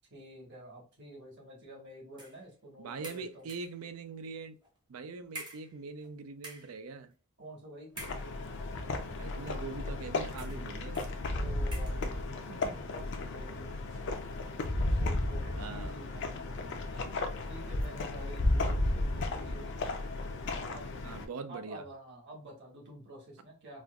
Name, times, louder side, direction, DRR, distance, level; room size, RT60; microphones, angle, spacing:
voice 1, 0.1-3.5 7.4-8.0 11.3-13.7 14.8-19.8 20.7-20.9 21.5-23.8, right 1 dB, 50° right, 1.3 m, -49 dB
sound 1, 2.2-2.4 3.0-3.8 4.6-4.8 5.3-6.1 6.4-6.8 7.9-8.6 9.4-9.5 10.3-10.7 10.9-11.2 11.7-12.0, right 1 dB, 20° right, 0.7 m, -47 dB
voice 2, 2.8-4.6 4.9-7.1 9.2-11.0 15.6-15.9 21.0-21.8, right 4 dB, 70° right, 0.4 m, -42 dB
sound 2, 8.0-21.3, left 2 dB, 55° left, 0.5 m, -34 dB
4.2 x 2.4 x 2.2 m
head